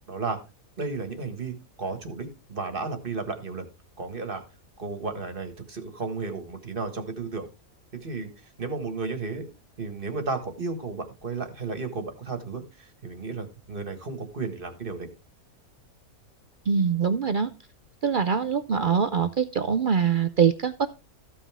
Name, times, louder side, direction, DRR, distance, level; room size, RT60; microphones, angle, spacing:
voice 1, 0.1-0.4 0.8-1.5 1.8-3.7 4.0-4.4 4.8-7.5 8.0-8.3 8.6-9.5 9.8-12.6 13.0-15.1, right 4 dB, 40° right, 7 dB, 1.7 m, -33 dB
voice 2, 16.7-17.5 18.0-20.9, right 6 dB, 65° right, 10 dB, 0.5 m, -23 dB
14.5 x 5.6 x 3.5 m, 0.28 s
omnidirectional pair, 1.5 m